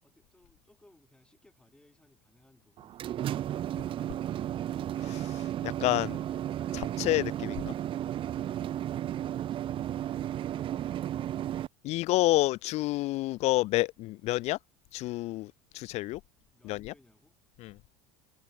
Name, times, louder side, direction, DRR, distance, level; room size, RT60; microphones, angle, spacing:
voice 1, 0.0-3.7 16.5-17.4, left 1 dB, 5° left, 7.9 m, -64 dB
sound 1, 2.8-11.7, right 11 dB, 40° right, 0.7 m, -34 dB
voice 2, 5.6-6.2 6.7-7.7 11.8-14.6 14.9-16.2 16.6-16.9 17.6-17.7, left 18 dB, 50° left, 0.6 m, -29 dB
supercardioid pair, 105°, 14 cm